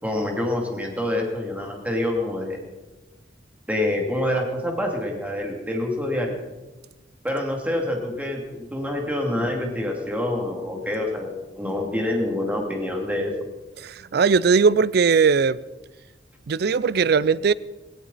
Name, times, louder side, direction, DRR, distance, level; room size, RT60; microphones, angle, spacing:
voice 1, 0.0-2.6 3.7-6.4 7.2-13.3, left 1 dB, 10° right, 1 dB, 2.8 m, -26 dB
voice 2, 13.8-15.6 16.5-17.5, right 5 dB, 60° right, 20 dB, 0.4 m, -19 dB
18.0 x 17.5 x 4.2 m, 1.1 s
head